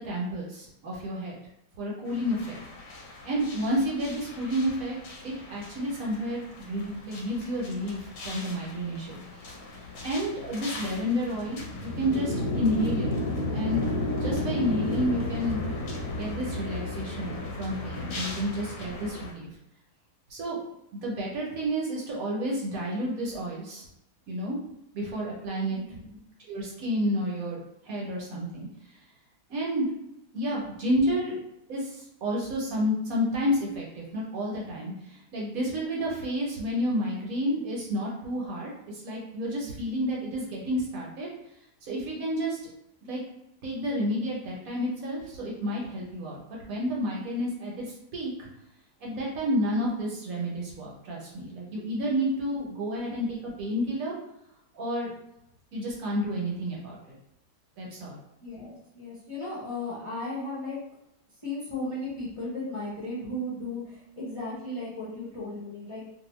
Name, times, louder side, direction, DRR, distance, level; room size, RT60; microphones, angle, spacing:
voice 1, 0.0-1.3 1.8-2.6 3.2-5.0 5.2-9.2 10.0-13.1 13.5-13.8 14.1-15.6 16.1-19.5 20.3-20.6 21.0-23.8 24.3-24.6 24.9-25.8 26.5-28.7 29.5-29.9 30.3-31.4 31.7-41.3 41.8-42.6 43.1-43.2 43.6-47.9 48.1-48.5 49.0-54.1 54.7-55.1 55.7-57.2 57.8-58.2, equal, 65° right, -3 dB, 1.1 m, -30 dB
sound 1, 2.1-19.3, left 2 dB, 65° left, 0.9 m, -34 dB
voice 2, 25.7-26.2 52.9-53.1 58.4-60.8 61.4-66.0, left 2 dB, 30° left, -9 dB, 0.6 m, -36 dB
2.6 x 2.5 x 3.0 m, 0.83 s
omnidirectional pair, 1.8 m